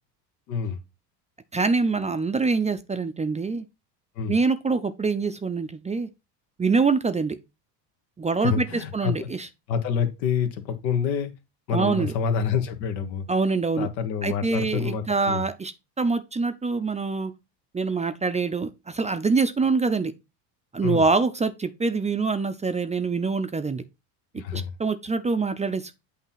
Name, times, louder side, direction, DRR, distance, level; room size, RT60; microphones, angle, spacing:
voice 1, 0.5-0.8 4.2-4.3 8.4-9.3 9.7-11.3 11.7-13.3 13.8-15.5 20.8-21.0 24.4-24.7, left 7 dB, 85° left, 1.5 m, -27 dB
voice 2, 1.5-3.7 4.3-6.1 6.6-7.4 8.2-9.5 11.7-12.1 13.3-13.9 14.2-15.7 16.0-17.3 17.7-20.1 20.7-23.8 24.3-25.9, right 4 dB, 15° right, 0.5 m, -25 dB
8.3 x 2.9 x 5.7 m
hypercardioid pair, 85°, 50 cm